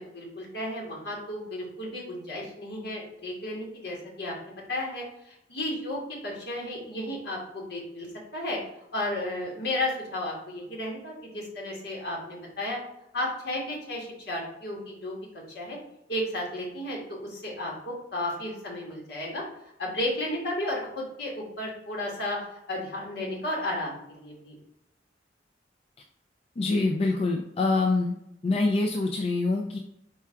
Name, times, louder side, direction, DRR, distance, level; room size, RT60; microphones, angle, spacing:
voice 1, 0.0-8.1 8.3-8.6 8.9-12.8 13.1-15.2 15.5-15.8 16.1-19.4 19.8-24.6, left 1 dB, 65° left, -2 dB, 1.5 m, -33 dB
voice 2, 26.6-28.2 28.4-29.8, left 3 dB, 35° left, 3 dB, 0.3 m, -25 dB
4.5 x 2.4 x 4.3 m, 0.82 s
head